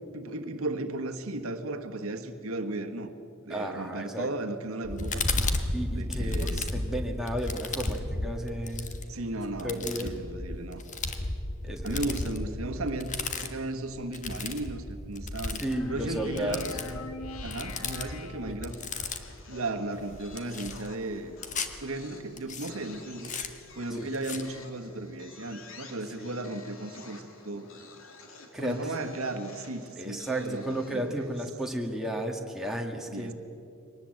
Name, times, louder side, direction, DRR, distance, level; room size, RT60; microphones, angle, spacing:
voice 1, 0.1-3.1 3.4-5.3 5.9-6.7 9.1-10.8 11.8-15.6 15.9-16.6 17.4-18.8 19.5-21.3 21.8-23.4 23.7-27.7 28.6-31.3 33.1-33.3, right 2 dB, 85° right, 6 dB, 1.5 m, -35 dB
voice 2, 3.5-4.3 5.7-8.9 9.6-10.1 11.6-12.2 15.6-17.0 18.5-18.6 24.0-24.1 26.2-26.3 28.5-28.7 30.0-33.3, right 1 dB, ahead, 0 dB, 1.9 m, -33 dB
sound 1, 4.8-19.4 19.9-21.8 22.4-22.7 23.2-23.5 24.1-24.4, left 2 dB, 35° left, 1.4 m, -34 dB
sound 2, 15.7-19.0, left 3 dB, 90° left, 1.3 m, -42 dB
sound 3, 16.4-17.1 18.7-31.6, left 3 dB, 70° left, 2.7 m, -51 dB
23.0 x 19.5 x 7.8 m, 2.7 s
head